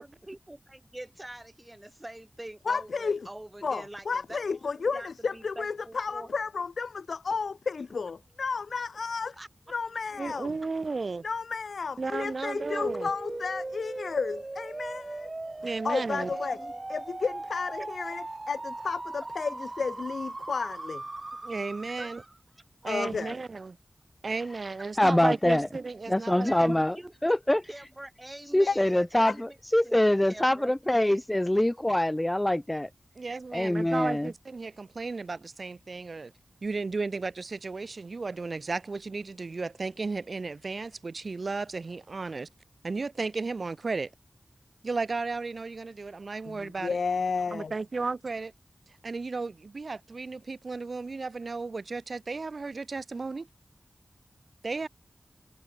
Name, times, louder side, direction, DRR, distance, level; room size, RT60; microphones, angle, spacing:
voice 1, 0.0-4.4 4.9-6.3 9.3-9.5 16.2-16.9 17.8-17.9 22.0-22.3 22.8-23.0 23.3-23.4 26.3-27.3 27.7-29.4 29.8-30.0 30.2-30.7, right 1 dB, 15° right, 4.6 m, -44 dB
voice 2, 2.6-3.3 3.6-9.4 9.7-10.5 11.2-15.3 15.6-16.6 16.9-21.0 22.8-23.3 28.7-28.8 29.2-29.3 46.5-47.7, left 5 dB, 90° left, 1.8 m, -32 dB
voice 3, 10.2-11.2 12.0-13.1 15.6-16.3 21.4-22.2 22.8-23.8 24.2-26.7 33.2-36.3 36.6-42.5 42.8-44.1 44.8-47.0 47.5-48.5 49.0-53.5 54.6-54.9, right 3 dB, 60° right, 3.1 m, -34 dB
sound 1, 12.5-22.4, right 2 dB, 35° right, 1.6 m, -39 dB
voice 4, 25.0-25.7 26.1-27.6 28.5-32.9 33.5-34.3, left 1 dB, 15° left, 1.6 m, -24 dB
wide cardioid pair, 90°, 0 cm